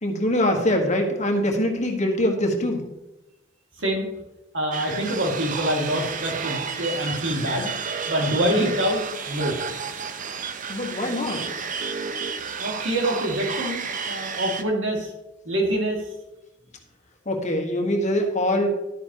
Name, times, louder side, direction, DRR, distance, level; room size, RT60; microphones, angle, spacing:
voice 1, 0.0-2.8 8.3-8.7 10.7-11.5 17.2-18.7, left 1 dB, 40° left, 3 dB, 1.6 m, -23 dB
voice 2, 4.5-7.7 8.1-9.0 9.3-9.6 12.6-15.1 15.4-16.0, right 1 dB, 75° right, 0 dB, 2.3 m, -25 dB
sound 1, 4.7-14.6, right 6 dB, 45° right, 0.7 m, -31 dB
11.5 x 9.5 x 3.0 m, 0.94 s
head